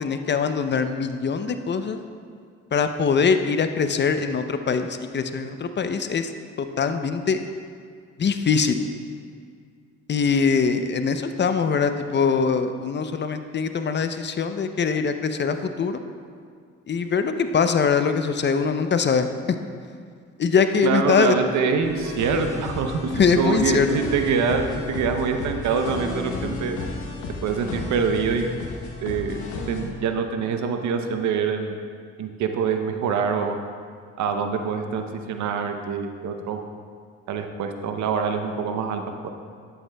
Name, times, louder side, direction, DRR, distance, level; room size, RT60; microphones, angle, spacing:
voice 1, 0.0-2.0 2.7-6.3 6.6-7.4 8.2-8.8 10.1-16.0 16.9-19.3 20.4-21.3 23.1-24.0, left 5 dB, 40° left, 8 dB, 0.6 m, -22 dB
voice 2, 20.8-26.8 27.4-28.5 29.0-29.4 29.7-31.8 32.2-33.6 34.2-36.6 37.3-39.3, right 5 dB, 75° right, 6 dB, 0.7 m, -25 dB
sound 1, 21.8-29.8, left 3 dB, 85° left, 1.1 m, -33 dB
10.5 x 8.2 x 2.3 m, 2.1 s
supercardioid pair, 65°, 29 cm